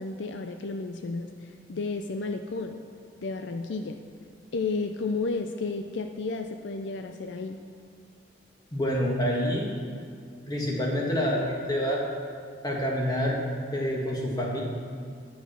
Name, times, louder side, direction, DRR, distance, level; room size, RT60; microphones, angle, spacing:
voice 1, 0.0-2.8 3.2-4.0 4.5-7.6, left 3 dB, 65° left, 6 dB, 0.5 m, -32 dB
voice 2, 8.7-9.7 10.5-12.0 12.6-13.4 13.7-14.6, equal, 20° left, -2 dB, 1.5 m, -27 dB
10.5 x 6.3 x 7.0 m, 2.2 s
head